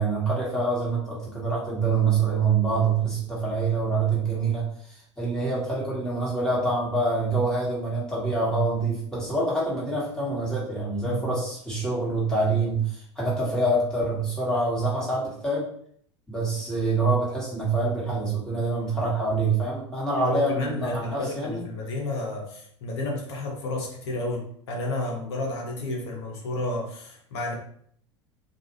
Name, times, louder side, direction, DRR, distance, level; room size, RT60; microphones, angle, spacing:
voice 1, 0.0-15.7 16.3-21.6, right 3 dB, 5° left, -7 dB, 1.3 m, -26 dB
voice 2, 11.0-11.4 18.7-18.9 20.2-27.5, left 2 dB, 60° left, 0 dB, 0.9 m, -31 dB
2.4 x 2.4 x 3.0 m, 0.62 s
figure-of-eight pair, 80°, 15 cm